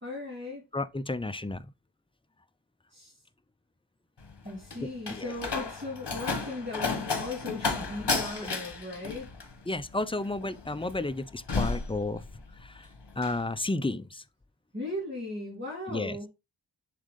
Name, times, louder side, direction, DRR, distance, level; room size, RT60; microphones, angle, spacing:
voice 1, 0.0-0.6 2.9-3.1 4.4-9.3 14.7-16.3, left 2 dB, 25° right, 2.3 m, -37 dB
voice 2, 0.7-1.7 5.1-5.3 8.4-8.5 9.7-12.2 12.6-12.9 13.2-14.2 15.9-16.2, left 2 dB, 15° left, 0.4 m, -32 dB
Slam, 4.2-12.7 13.0-13.4, left 4 dB, 65° left, 1.2 m, -33 dB
6.9 x 3.7 x 3.7 m
wide cardioid pair, 50°, 44 cm